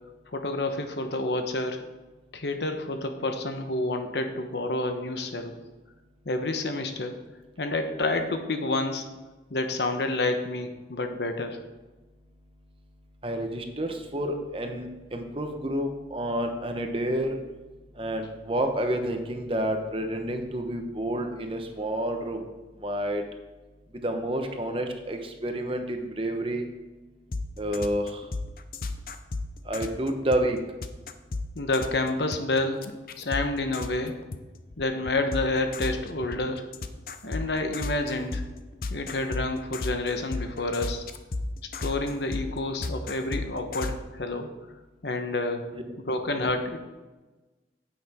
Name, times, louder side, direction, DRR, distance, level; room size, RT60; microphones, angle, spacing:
voice 1, 0.3-1.8 2.3-5.5 6.2-7.1 7.6-9.0 9.5-11.6 31.5-32.9 33.2-34.2 34.8-36.7 37.2-38.4 38.9-41.0 41.8-44.5 45.0-45.6 46.0-46.8, left 2 dB, 70° left, 6 dB, 1.0 m, -29 dB
voice 2, 13.2-17.4 18.0-22.4 22.8-23.2 23.9-26.7 27.6-28.2 29.7-30.6 45.7-45.8, right 1 dB, 30° right, 5 dB, 1.0 m, -29 dB
sound 1, 27.3-34.4 34.7-44.0, left 3 dB, 50° left, 0.6 m, -34 dB
9.9 x 8.6 x 3.6 m, 1.2 s
head